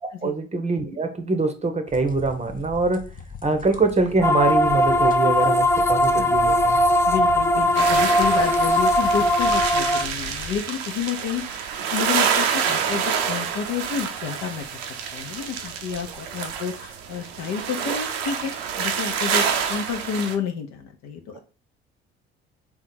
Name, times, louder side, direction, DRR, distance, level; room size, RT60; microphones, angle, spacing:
voice 1, 0.0-3.1 3.4-6.8, right 3 dB, 20° right, 7 dB, 0.7 m, -24 dB
sound 1, 1.9-10.6, left 5 dB, 30° left, 0.7 m, -40 dB
sound 2, 4.2-10.0, left 1 dB, 10° left, 0.4 m, -19 dB
voice 2, 7.1-11.6 11.9-14.7 15.1-21.4, left 7 dB, 65° left, 6 dB, 0.8 m, -30 dB
sound 3, 7.7-20.4, right 7 dB, 80° right, 0.6 m, -27 dB
3.6 x 2.4 x 4.2 m, 0.36 s
hypercardioid pair, 55°, 31 cm